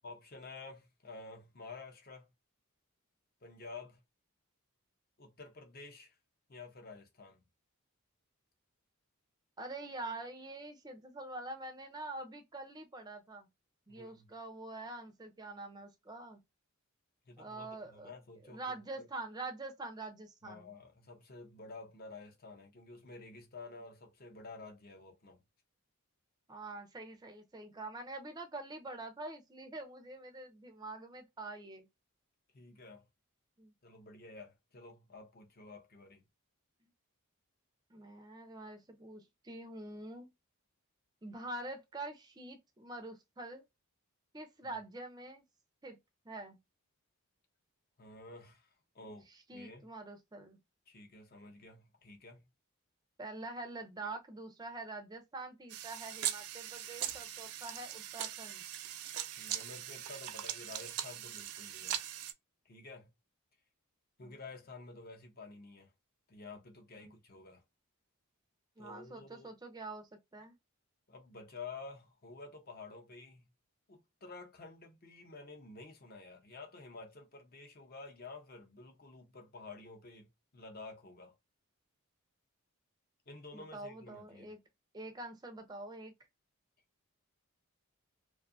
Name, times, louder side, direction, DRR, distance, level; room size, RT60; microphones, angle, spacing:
voice 1, 0.0-2.3 3.4-4.0 5.2-6.2 6.5-7.4 13.9-14.3 17.3-19.1 20.4-25.4 32.5-33.1 33.8-36.2 44.6-44.8 48.0-49.3 49.5-49.9 50.9-52.5 59.3-62.0 62.6-63.1 64.2-65.9 66.3-67.6 68.8-69.5 71.1-73.4 73.9-81.3 83.3-84.6, left 3 dB, 40° left, 0.7 m, -51 dB
voice 2, 9.6-13.5 13.9-16.4 17.4-18.1 18.4-20.7 26.5-31.9 33.6-33.7 37.9-40.3 41.2-43.6 44.3-45.4 45.8-46.0 46.2-46.6 49.5-50.6 53.2-58.6 64.2-64.3 67.0-67.1 68.8-70.5 83.5-84.6 84.9-86.1, right 2 dB, 20° right, 0.5 m, -45 dB
sound 1, 55.7-62.3, right 11 dB, 75° right, 0.4 m, -40 dB
2.6 x 2.3 x 2.5 m
head